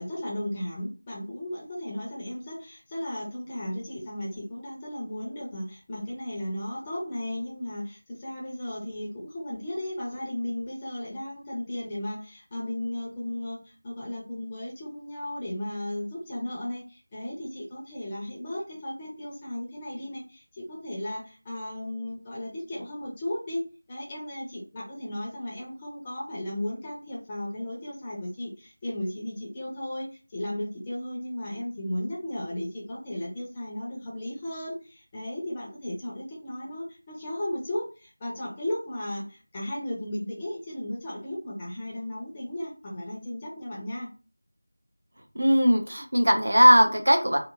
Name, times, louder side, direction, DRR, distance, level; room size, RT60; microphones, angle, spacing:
voice 1, 0.0-23.6 23.9-44.1, left 1 dB, 15° left, -5 dB, 0.6 m, -35 dB
voice 2, 45.3-47.4, equal, 70° right, 3 dB, 0.7 m, -19 dB
2.8 x 2.4 x 2.4 m, 0.33 s
figure-of-eight pair, 170°, 0 cm